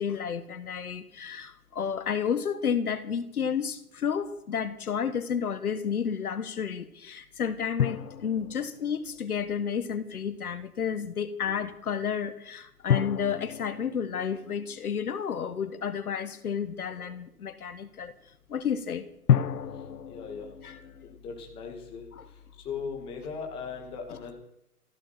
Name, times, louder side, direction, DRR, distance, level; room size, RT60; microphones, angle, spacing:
voice 1, 0.0-18.1 18.5-19.1 20.6-20.8 22.2-22.3, left 7 dB, 70° left, 13 dB, 1.4 m, -31 dB
sound 1, 7.8-10.1 12.9-15.8 19.3-21.2, left 9 dB, 90° left, 0.8 m, -31 dB
voice 2, 20.1-20.5 21.2-22.1 22.6-24.3, left 5 dB, 10° left, 1 dB, 1.8 m, -38 dB
15.0 x 12.5 x 5.8 m, 0.78 s
hypercardioid pair, 160°, 46 cm